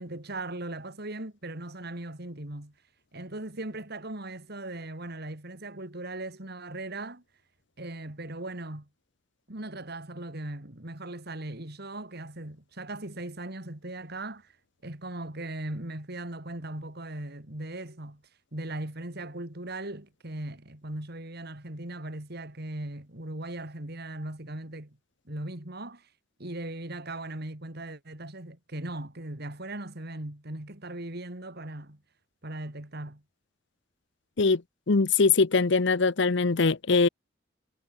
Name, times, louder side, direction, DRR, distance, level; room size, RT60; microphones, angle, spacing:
voice 1, 0.0-2.7 3.1-7.2 7.8-8.9 9.5-14.5 14.8-18.2 18.5-25.0 25.2-26.1 26.4-32.0 32.4-33.2, right 1 dB, 55° right, 3.1 m, -38 dB
voice 2, 34.9-37.1, left 4 dB, 65° left, 0.8 m, -22 dB
head